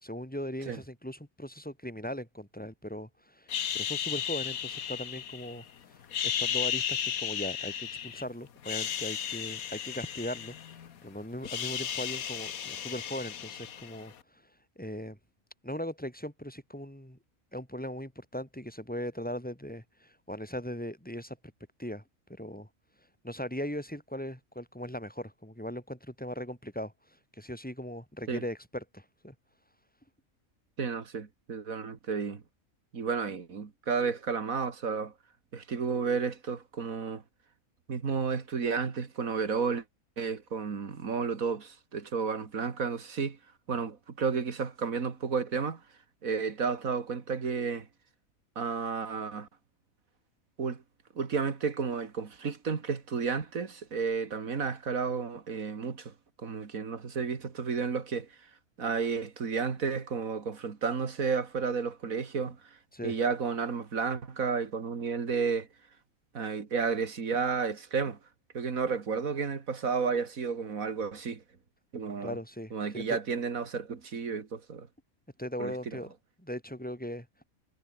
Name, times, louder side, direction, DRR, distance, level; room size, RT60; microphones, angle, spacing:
voice 1, 0.0-10.6 11.0-14.4 14.8-15.2 15.6-17.2 17.5-21.4 21.8-22.0 22.3-22.7 23.2-26.9 27.4-29.3 62.9-63.1 72.2-73.2 75.4-76.1 76.4-77.3, equal, 5° left, 5.4 m, -39 dB
sound 1, 3.5-5.6 6.0-8.2 8.6-11.0 11.2-14.1, left 9 dB, 80° left, 1.6 m, -34 dB
voice 2, 30.8-32.4 32.9-35.1 35.5-37.2 37.9-39.8 40.2-43.4 43.7-45.8 46.2-47.9 48.6-49.5 50.6-50.8 51.2-56.1 56.4-58.3 58.8-62.6 63.0-65.7 66.3-68.2 68.5-71.4 71.9-72.4 72.7-74.9 75.6-76.0, right 5 dB, 75° right, 2.4 m, -32 dB
omnidirectional pair, 1.5 m